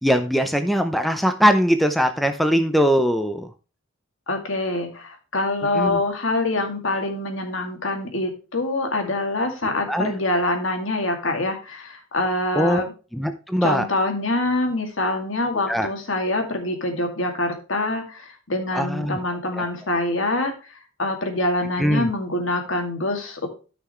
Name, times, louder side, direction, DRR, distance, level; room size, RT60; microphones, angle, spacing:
voice 1, 0.0-3.5 5.7-6.0 9.9-10.2 12.5-13.9 15.7-15.9 18.7-19.2 19.6-19.7 21.8-22.1, equal, ahead, 7 dB, 0.6 m, -21 dB
voice 2, 4.3-12.9 13.6-20.5 21.0-23.5, left 2 dB, 70° left, 4 dB, 2.3 m, -25 dB
13.5 x 5.9 x 3.1 m, 0.34 s
head